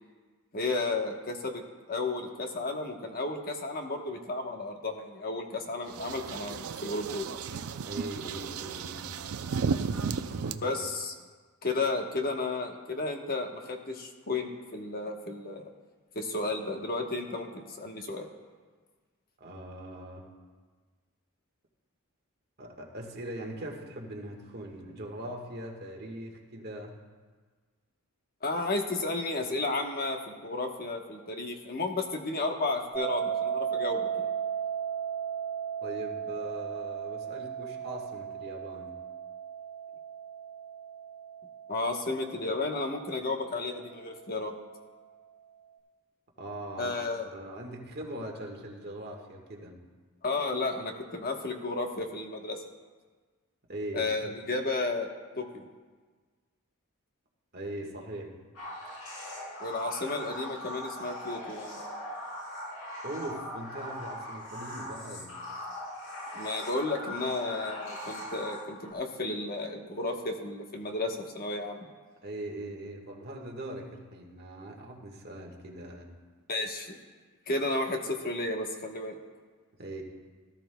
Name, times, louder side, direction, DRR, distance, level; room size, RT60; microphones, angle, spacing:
voice 1, 0.5-1.6 1.9-7.3 10.6-11.1 11.6-15.7 16.1-18.3 28.4-34.3 41.7-44.5 46.8-47.2 50.2-52.6 53.9-55.1 55.4-55.7 59.6-61.8 66.3-71.9 76.5-77.0 77.5-79.2, left 2 dB, 45° left, 3 dB, 1.1 m, -33 dB
sound 1, 5.9-10.5, right 5 dB, 75° right, 0.5 m, -34 dB
voice 2, 7.8-9.2 10.3-10.8 19.4-20.3 22.6-27.0 35.8-38.9 46.4-47.0 47.3-49.8 53.7-54.3 57.5-58.3 63.0-65.4 72.2-76.1 79.8-80.0, right 1 dB, 50° right, 0 dB, 1.6 m, -41 dB
sound 2, 32.9-43.9, right 8 dB, 5° left, 3.9 m, -36 dB
sound 3, 58.6-68.9, left 1 dB, 65° left, 3.3 m, -40 dB
18.0 x 13.0 x 2.3 m, 1.4 s
head